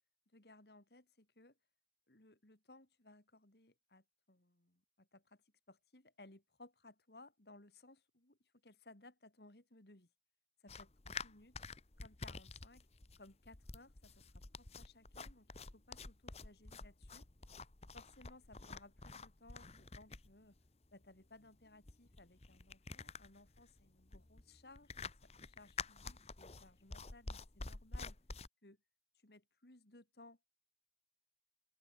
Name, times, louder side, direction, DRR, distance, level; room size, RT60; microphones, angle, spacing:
voice 1, 0.3-1.6 2.1-10.1 10.6-10.9 11.2-11.7 12.0-12.9 13.2-15.5 15.7-17.3 17.9-20.6 20.9-28.2 28.6-28.8 29.1-30.4, left 2 dB, 70° left, 3.0 m, -62 dB
sound 1, 10.7-28.5, left 4 dB, 35° left, 1.1 m, -49 dB
open air
head